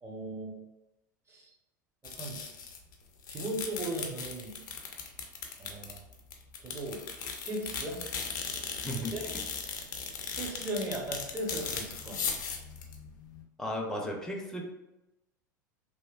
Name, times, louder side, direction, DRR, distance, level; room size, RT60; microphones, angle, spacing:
voice 1, 0.0-0.6 1.3-1.5 2.0-2.4 3.3-4.6 5.6-6.0 6.6-8.0 8.9-9.3 10.3-12.2, right 1 dB, 25° right, -2 dB, 0.9 m, -37 dB
sound 1, 2.0-2.9 3.2-13.4, left 5 dB, 70° left, 0.5 m, -38 dB
voice 2, 13.6-14.6, left 1 dB, 5° left, 0 dB, 0.6 m, -35 dB
3.1 x 2.1 x 2.4 m, 0.96 s
figure-of-eight pair, 80°, 10 cm